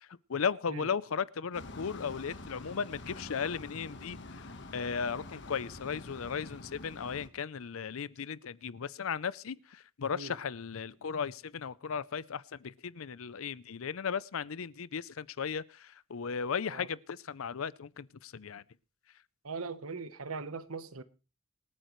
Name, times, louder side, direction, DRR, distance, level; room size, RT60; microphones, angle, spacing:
voice 1, 0.0-4.4 4.7-18.6, left 6 dB, 75° left, 0.6 m, -36 dB
sound 1, 1.5-7.3, left 2 dB, 55° left, 1.3 m, -46 dB
voice 2, 19.4-21.0, right 4 dB, 85° right, 1.1 m, -40 dB
25.5 x 9.2 x 3.1 m
head